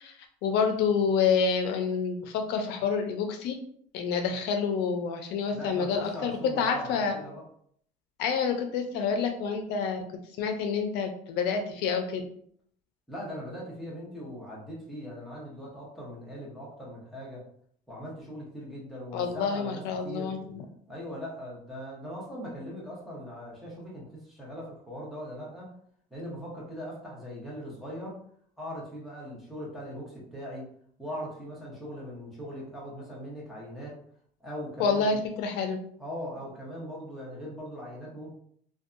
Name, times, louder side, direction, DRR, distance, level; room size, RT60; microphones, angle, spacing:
voice 1, 0.0-3.6 3.9-6.3 6.6-7.2 8.2-10.0 10.4-12.2 19.1-20.6 34.8-35.8, left 5 dB, 80° left, 5 dB, 0.4 m, -28 dB
voice 2, 5.5-7.4 13.1-17.4 17.9-20.3 20.9-25.7 26.1-28.2 28.6-30.7 31.0-34.0 34.4-35.2 36.0-38.3, equal, ahead, -6 dB, 0.7 m, -40 dB
2.6 x 2.2 x 2.4 m, 0.63 s
cardioid pair, 165°, 17 cm